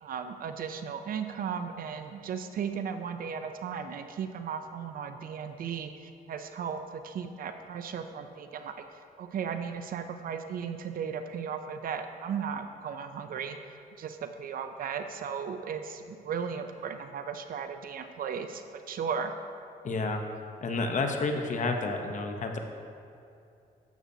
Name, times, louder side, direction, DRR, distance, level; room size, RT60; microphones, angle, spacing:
voice 1, 0.0-8.7 9.2-13.6 14.0-19.3, right 7 dB, 65° right, 8 dB, 0.5 m, -36 dB
voice 2, 19.8-20.2 20.6-22.6, left 3 dB, 55° left, 4 dB, 0.9 m, -30 dB
12.0 x 8.2 x 2.8 m, 2.5 s
cardioid pair, 90°, 16 cm